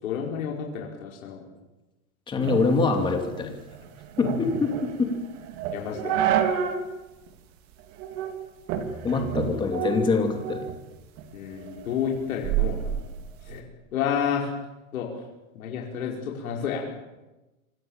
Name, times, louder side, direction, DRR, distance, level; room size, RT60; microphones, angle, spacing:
voice 1, 0.0-1.4 4.2-4.3 5.7-6.3 11.3-13.0 13.5-13.7 13.9-14.5 14.9-15.1 15.5-17.0, left 7 dB, 75° left, -1 dB, 5.2 m, -30 dB
voice 2, 2.3-3.5 4.2-5.1 9.0-10.6, left 4 dB, 10° left, 4 dB, 2.8 m, -24 dB
sound 1, 2.4-6.9 7.3-7.4 8.0-8.4 8.7-10.8 11.2-13.6, right 9 dB, 35° right, 2.7 m, -29 dB
26.5 x 25.5 x 7.4 m, 1.1 s
supercardioid pair, 170°, 42 cm